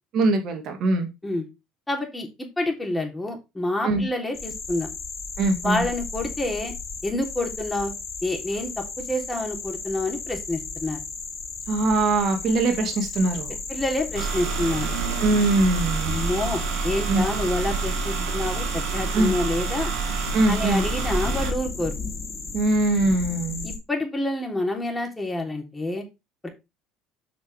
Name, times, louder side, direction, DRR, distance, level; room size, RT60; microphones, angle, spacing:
voice 1, 0.1-1.1 3.8-4.0 5.4-5.8 11.7-13.6 15.2-16.1 17.1-17.2 19.1-19.3 20.3-20.8 22.5-23.7, right 2 dB, 55° right, 5 dB, 2.0 m, -22 dB
voice 2, 1.9-4.9 5.6-6.7 7.0-7.9 8.2-11.0 13.7-14.9 16.1-19.9 20.5-22.0 23.6-26.0 26.4-26.5, left 1 dB, 15° left, 1 dB, 3.5 m, -28 dB
sound 1, 4.3-23.8, left 4 dB, 35° left, 3.7 m, -35 dB
sound 2, 14.1-21.5, right 5 dB, 70° right, 1.8 m, -28 dB
8.2 x 6.1 x 3.5 m, 0.24 s
hypercardioid pair, 70°, 0 cm